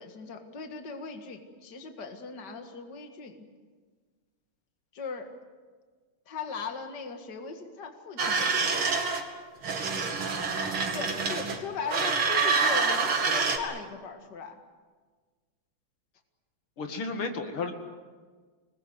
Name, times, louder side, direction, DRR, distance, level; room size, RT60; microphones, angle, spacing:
voice 1, 0.0-3.4 4.9-5.3 6.3-8.8 10.9-14.6, left 5 dB, 55° left, 5 dB, 2.4 m, -39 dB
sound 1, 8.2-9.2 9.6-11.6 11.9-13.6, right 4 dB, 85° right, 3.3 m, -27 dB
voice 2, 16.8-17.7, left 3 dB, 85° left, 4 dB, 3.0 m, -32 dB
28.0 x 20.5 x 8.1 m, 1.5 s
omnidirectional pair, 2.3 m